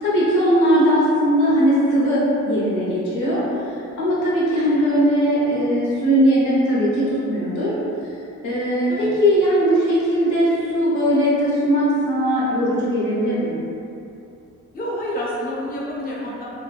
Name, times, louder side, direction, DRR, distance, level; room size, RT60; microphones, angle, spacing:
voice 1, 0.0-3.4 4.0-7.7 8.4-13.6, equal, 75° left, -8 dB, 1.0 m, -19 dB
voice 2, 4.5-4.9 8.9-9.1 14.7-16.4, equal, 30° left, -6 dB, 0.6 m, -29 dB
3.3 x 2.2 x 2.3 m, 2.7 s
cardioid pair, 90°, 30 cm